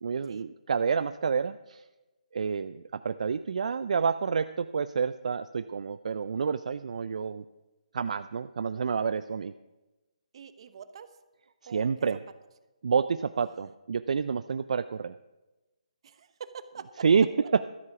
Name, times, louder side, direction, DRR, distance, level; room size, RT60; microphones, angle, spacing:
voice 1, 0.0-1.8 2.3-7.4 7.9-9.5 11.7-12.2 12.8-15.1 17.0-17.7, right 6 dB, 65° right, 13 dB, 0.4 m, -28 dB
voice 2, 10.3-11.1 11.6-11.9 13.5-13.7 16.0-16.9, right 7 dB, 45° right, 12 dB, 0.9 m, -45 dB
13.0 x 8.1 x 6.0 m, 1.1 s
hypercardioid pair, 155°, 4 cm